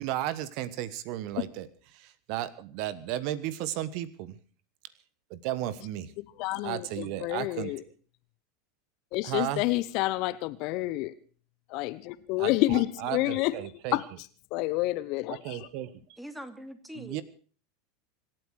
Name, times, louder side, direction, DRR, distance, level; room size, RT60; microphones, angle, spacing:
voice 1, 0.0-4.4 5.3-6.1 6.6-7.7 9.2-9.6 12.4-14.0 15.4-15.9 16.9-17.2, right 13 dB, 55° right, 1.2 m, -34 dB
voice 2, 6.4-7.8 9.1-11.1 11.7-13.5 13.9-14.0 14.5-15.7, left 18 dB, 55° left, 1.0 m, -29 dB
voice 3, 16.2-17.2, equal, 5° right, 2.8 m, -42 dB
25.5 x 8.9 x 6.4 m
hypercardioid pair, 85°, 0 cm